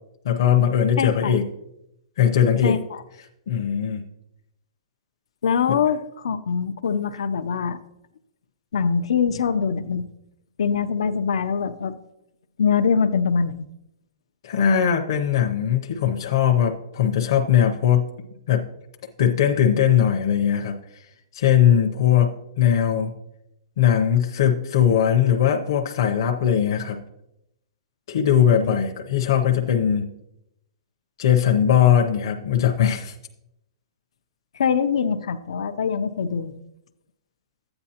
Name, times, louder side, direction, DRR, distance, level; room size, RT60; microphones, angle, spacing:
voice 1, 0.2-1.4 2.2-2.8 3.5-4.0 5.7-5.8 14.4-18.0 18.5-18.6 19.2-20.8 21.3-23.1 23.8-27.0 28.1-30.1 31.2-33.1, left 9 dB, 45° left, 2 dB, 0.7 m, -20 dB
voice 2, 1.0-1.4 2.6-3.0 5.4-7.8 8.7-10.1 10.6-12.0 12.6-13.7 34.5-36.5, left 6 dB, 80° left, 8 dB, 0.6 m, -23 dB
12.5 x 8.7 x 2.9 m, 0.83 s
hypercardioid pair, 175°, 3 cm